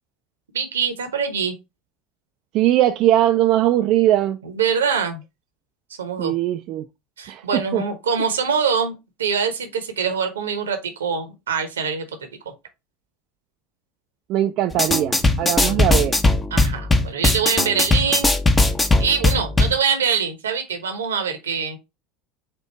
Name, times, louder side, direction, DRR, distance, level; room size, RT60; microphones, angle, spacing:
voice 1, 0.5-1.6 4.4-5.2 6.0-6.3 7.2-8.9 9.2-12.0 15.6-15.8 16.5-18.3 19.0-21.8, right 6 dB, 75° right, 0.9 m, -24 dB
voice 2, 2.5-4.4 6.2-6.8 7.3-7.4 7.7-7.8 14.3-16.2, right 13 dB, 50° right, 0.3 m, -20 dB
sound 1, 14.7-19.8, left 2 dB, 15° left, 0.7 m, -19 dB
4.4 x 2.5 x 4.4 m
figure-of-eight pair, 75°, 0 cm